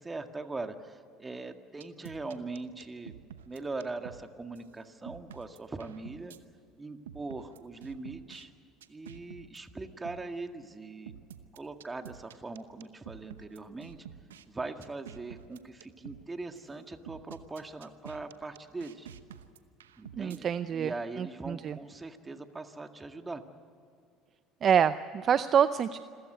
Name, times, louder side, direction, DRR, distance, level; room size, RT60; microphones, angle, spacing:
voice 1, 0.0-3.1 3.5-6.4 6.8-8.5 8.9-11.1 11.5-14.0 14.5-19.1 20.0-23.4, right 3 dB, 20° right, 7 dB, 1.9 m, -41 dB
sound 1, 1.8-4.2 4.6-4.7 5.1-6.4 7.1-8.4 8.8-9.6 10.0-10.2 11.1-14.4 14.8-16.2 16.6-16.7 17.1-20.4, right 9 dB, 85° right, 0.9 m, -48 dB
voice 2, 20.2-21.8 24.6-26.0, right 8 dB, 45° right, 13 dB, 0.6 m, -27 dB
27.0 x 14.5 x 9.3 m, 2.4 s
hypercardioid pair, 70°, 0 cm